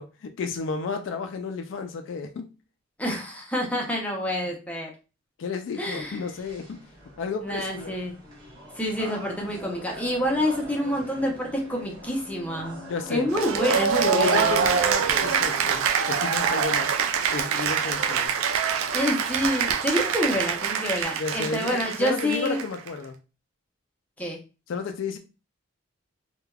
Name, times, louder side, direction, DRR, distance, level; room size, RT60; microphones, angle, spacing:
voice 1, 0.0-2.5 5.4-6.8 7.2-8.0 12.9-13.3 14.1-15.8 16.1-17.0 17.3-18.3 21.2-23.1 24.7-25.2, left 5 dB, 65° left, 0.3 m, -32 dB
voice 2, 3.0-4.9 5.8-6.2 7.4-8.1 8.7-12.8 13.1-14.6 18.9-22.6 24.2-24.4, equal, 5° left, 0.5 m, -27 dB
sound 1, 6.0-18.3, right 1 dB, 20° right, 1.1 m, -45 dB
sound 2, 9.5-15.8, left 1 dB, 55° right, 0.8 m, -43 dB
Cheering / Applause, 13.3-22.9, right 7 dB, 85° right, 0.3 m, -25 dB
3.3 x 2.2 x 2.2 m
head